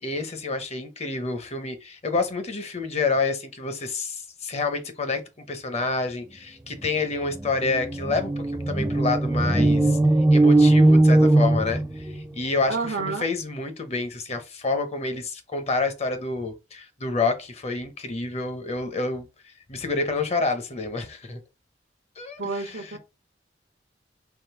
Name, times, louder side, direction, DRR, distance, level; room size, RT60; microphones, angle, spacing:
voice 1, 0.0-5.2 5.5-10.0 10.3-19.3 19.7-21.4 22.2-23.0, left 3 dB, 35° left, 0.8 m, -28 dB
sound 1, 6.8-6.9 7.2-12.3, right 2 dB, 10° right, 0.4 m, -19 dB
voice 2, 12.7-13.3 22.4-23.0, right 4 dB, 80° right, 0.8 m, -29 dB
3.7 x 3.1 x 4.5 m
head